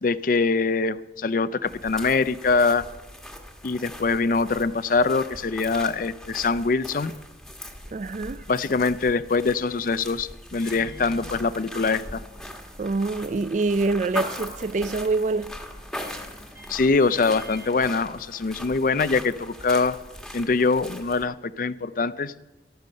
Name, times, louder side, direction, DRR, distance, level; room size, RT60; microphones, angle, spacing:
voice 1, 0.0-2.9 3.6-7.1 8.5-12.2 16.7-20.0 20.3-22.3, left 4 dB, 50° left, 0.5 m, -23 dB
sound 1, 1.7-21.3, left 1 dB, ahead, 1.5 m, -40 dB
voice 2, 7.9-8.4 12.8-15.5, right 3 dB, 40° right, 0.4 m, -25 dB
Microwave oven, 10.6-18.7, equal, 15° right, 1.2 m, -49 dB
13.5 x 12.0 x 6.5 m
head